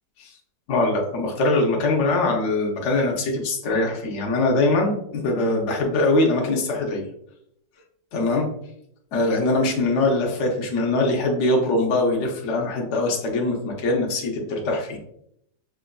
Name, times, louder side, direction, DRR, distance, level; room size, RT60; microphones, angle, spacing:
voice 1, 0.7-7.0 8.1-8.5 9.1-15.0, left 2 dB, 65° left, -1 dB, 0.7 m, -22 dB
5.8 x 2.4 x 2.2 m, 0.73 s
omnidirectional pair, 2.0 m